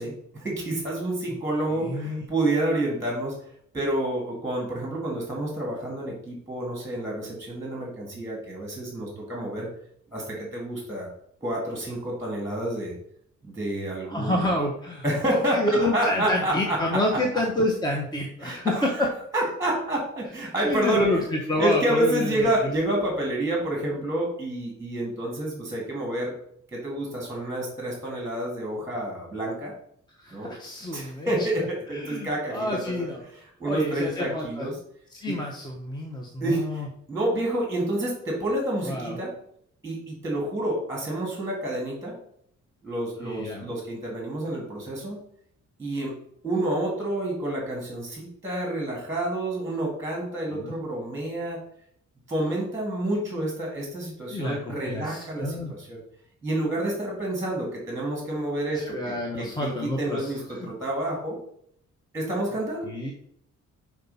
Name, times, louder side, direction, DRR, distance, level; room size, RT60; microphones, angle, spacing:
voice 1, 0.0-3.4 3.7-9.7 10.1-11.1 11.4-12.9 13.4-14.4 15.0-17.0 18.4-18.9 19.3-21.1 21.6-26.3 26.7-29.7 30.3-30.5 30.9-33.1 33.6-34.8 35.3-35.4 36.4-39.3 39.8-42.1 42.8-45.2 45.8-46.1 46.4-51.6 52.3-56.0 56.4-61.4 62.1-62.9, right 1 dB, 10° right, -2 dB, 2.2 m, -29 dB
voice 2, 1.8-2.2 14.0-18.7 20.6-22.7 30.2-31.3 31.9-33.2 33.6-34.7 35.1-36.9 38.8-39.2 43.2-43.7 50.5-50.7 54.3-55.7 58.7-60.7 62.8-63.1, left 1 dB, 15° left, 0 dB, 0.9 m, -28 dB
5.5 x 4.7 x 5.4 m, 0.68 s
wide cardioid pair, 145°, 30 cm